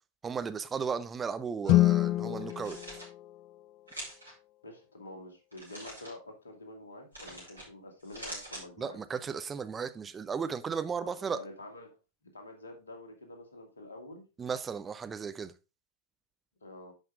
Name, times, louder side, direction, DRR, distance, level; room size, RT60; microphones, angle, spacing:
voice 1, 0.2-3.0 8.8-11.4 14.4-15.5, right 6 dB, 20° right, 0.6 m, -35 dB
Guitar, 1.6-4.2, left 16 dB, 40° left, 0.3 m, -28 dB
sound 1, 2.4-3.1 3.9-4.3 5.5-6.1 7.1-7.7 8.0-8.6, right 1 dB, 85° right, 5.0 m, -44 dB
voice 2, 4.6-9.0 11.0-12.0 12.3-14.2 16.6-16.9, left 1 dB, 70° left, 2.3 m, -47 dB
10.5 x 5.7 x 3.6 m
figure-of-eight pair, 90°, 0 cm